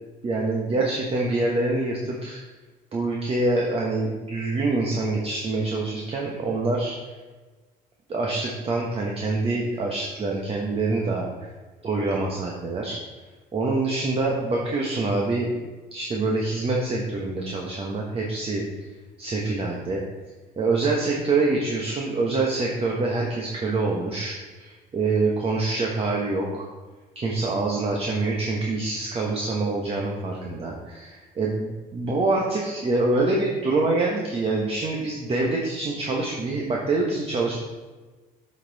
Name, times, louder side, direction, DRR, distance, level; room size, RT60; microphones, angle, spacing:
voice 1, 0.2-2.4 2.9-7.0 8.1-11.3 11.8-13.0 13.5-15.5 15.9-18.6 19.2-20.0 20.6-26.7 27.1-37.6, right 3 dB, 35° right, -2 dB, 1.2 m, -25 dB
8.2 x 5.5 x 4.1 m, 1.3 s
cardioid pair, 110°, 17 cm